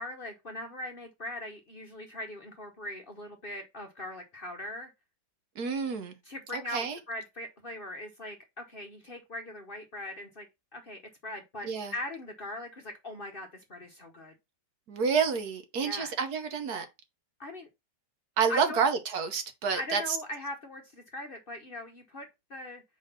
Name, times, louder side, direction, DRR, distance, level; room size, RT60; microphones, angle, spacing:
voice 1, 0.0-4.9 6.2-10.5 10.7-14.3 15.8-16.1 17.4-17.7 18.5-18.8 19.7-22.8, left 1 dB, 40° left, 0.9 m, -40 dB
voice 2, 5.6-6.1 6.5-7.0 11.6-11.9 14.9-16.9 18.4-20.0, right 6 dB, 65° right, 1.5 m, -29 dB
4.9 x 4.0 x 5.5 m
omnidirectional pair, 1.9 m